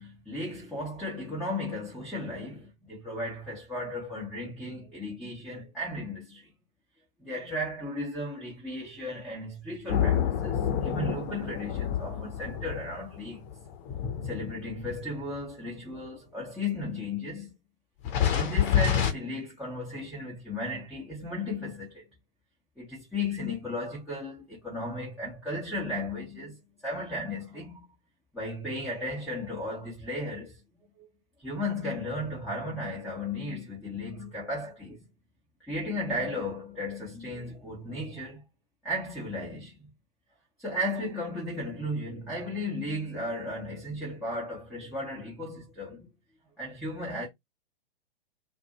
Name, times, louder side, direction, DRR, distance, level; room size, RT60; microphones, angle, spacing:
voice 1, 0.0-6.5 7.2-13.5 14.2-17.5 18.3-22.1 22.8-27.9 28.3-30.6 31.0-31.1 31.4-35.0 35.6-38.4 38.8-39.9 40.6-46.1 46.6-47.3, left 1 dB, ahead, 1.1 m, -35 dB
sound 1, 9.9-15.3 16.0-16.1 18.0-19.1, left 9 dB, 30° left, 1.0 m, -28 dB
2.6 x 2.6 x 4.1 m
figure-of-eight pair, 110°, 30 cm